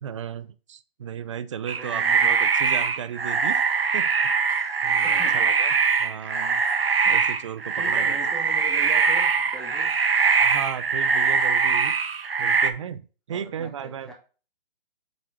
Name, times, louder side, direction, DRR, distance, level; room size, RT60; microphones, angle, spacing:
voice 1, 0.0-3.6 3.9-4.1 4.8-5.7 6.0-6.6 7.1-8.2 10.4-11.9 12.4-14.1, right 8 dB, 35° right, 13 dB, 0.4 m, -35 dB
sound 1, 1.7-12.7, right 5 dB, 85° right, 0.9 m, -22 dB
voice 2, 1.8-2.3 5.0-5.5 7.0-7.1 7.8-9.9 13.3-14.1, right 1 dB, ahead, 1 dB, 0.9 m, -41 dB
7.8 x 3.0 x 4.7 m, 0.36 s
hypercardioid pair, 145°, 29 cm